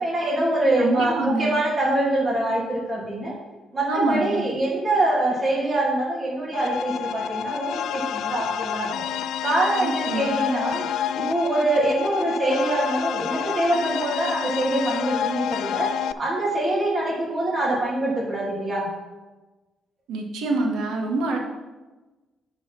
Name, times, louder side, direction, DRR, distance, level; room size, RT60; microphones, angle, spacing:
voice 1, 0.0-3.3 3.7-9.0 9.4-10.9 11.1-18.9, right 1 dB, 25° right, -5 dB, 2.6 m, -24 dB
voice 2, 0.8-1.5 3.9-4.4 9.8-10.3 20.1-21.4, right 2 dB, 85° right, 2 dB, 1.4 m, -25 dB
sound 1, 6.5-16.1, left 9 dB, 80° left, 0.3 m, -29 dB
9.7 x 4.1 x 5.8 m, 1.2 s
cardioid pair, 90°, 0 cm